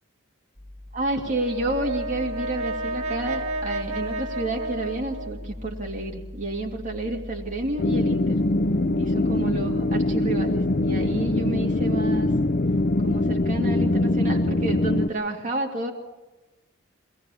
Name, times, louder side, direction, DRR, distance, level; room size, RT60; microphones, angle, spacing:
sound 1, 0.5-13.7, left 1 dB, 10° right, 4.8 m, -40 dB
voice 1, 0.9-8.4 9.0-12.3 13.0-15.9, right 2 dB, 40° right, -1 dB, 2.4 m, -30 dB
Brass instrument, 1.2-5.6, right 2 dB, 80° right, 2.1 m, -32 dB
sound 2, 7.8-15.1, left 2 dB, 45° left, 0.6 m, -23 dB
22.5 x 18.5 x 7.1 m, 1.1 s
head